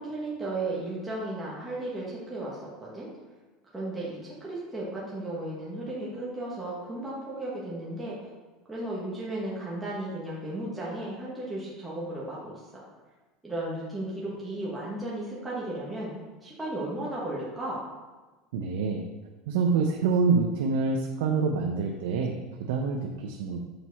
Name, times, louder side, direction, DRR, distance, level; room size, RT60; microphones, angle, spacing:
voice 1, 0.0-3.1 3.7-8.3 8.7-12.8 13.4-16.1 16.4-17.8, right 1 dB, 10° right, -7 dB, 1.3 m, -35 dB
voice 2, 18.5-19.0 19.5-23.6, right 4 dB, 85° right, 2 dB, 0.6 m, -26 dB
6.6 x 4.4 x 4.1 m, 1.2 s
supercardioid pair, 145°, 0 cm